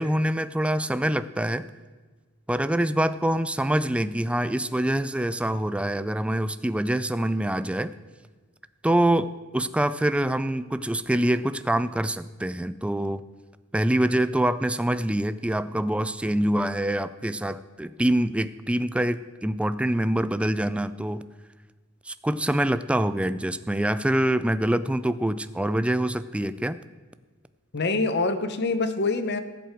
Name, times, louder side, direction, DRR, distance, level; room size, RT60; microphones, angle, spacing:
voice 1, 0.0-1.7 2.5-7.9 8.8-13.2 13.7-21.2 22.1-26.8, right 1 dB, 5° right, 13 dB, 0.3 m, -25 dB
voice 2, 27.7-29.4, left 3 dB, 55° left, 10 dB, 0.9 m, -25 dB
18.5 x 7.9 x 4.5 m, 1.4 s
head